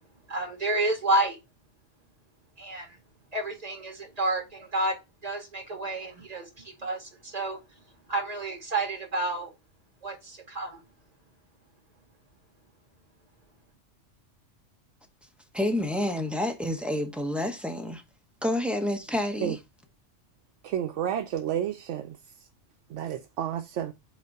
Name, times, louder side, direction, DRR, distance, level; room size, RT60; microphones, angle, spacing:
voice 1, 0.3-1.4 2.6-3.0 3.3-5.0 5.2-7.6 8.1-9.5 10.0-10.8, right 2 dB, 30° right, 2.0 m, -30 dB
voice 2, 15.5-18.0 18.4-19.5, left 1 dB, ahead, 0.8 m, -28 dB
voice 3, 20.6-22.5 22.9-23.9, right 10 dB, 80° right, 0.9 m, -31 dB
5.3 x 4.0 x 4.6 m
omnidirectional pair, 1.2 m